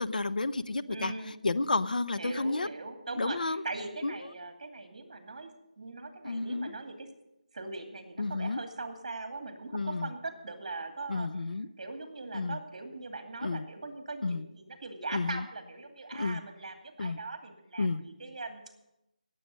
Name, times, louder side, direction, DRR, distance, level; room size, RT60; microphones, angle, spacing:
voice 1, 0.0-1.1 1.4-2.7 3.2-3.6 4.0-4.1 6.2-6.7 8.2-8.6 9.7-10.1 11.1-11.7 12.3-12.6 13.4-13.7 14.2-14.4 15.1-15.4 16.1-16.4 17.0-17.2 17.8-18.0, left 3 dB, 75° left, 14 dB, 0.7 m, -31 dB
voice 2, 0.9-1.3 2.2-7.1 7.5-11.3 11.8-18.6, right 3 dB, 50° right, 5 dB, 2.4 m, -41 dB
17.5 x 7.8 x 6.5 m, 0.88 s
figure-of-eight pair, 170°, 5 cm